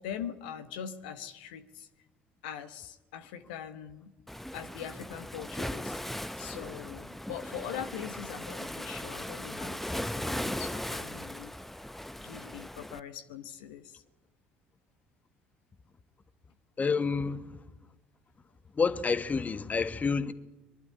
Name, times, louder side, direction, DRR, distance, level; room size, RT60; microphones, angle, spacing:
voice 1, 0.0-1.9 2.4-4.1 4.5-11.5 12.2-14.0, left 9 dB, 80° left, 1.2 m, -42 dB
Waves surf, 4.3-13.0, left 1 dB, 5° left, 0.8 m, -38 dB
voice 2, 16.8-17.6 18.7-20.3, left 5 dB, 30° left, 1.4 m, -29 dB
23.0 x 12.0 x 9.8 m
hypercardioid pair, 60°, 5 cm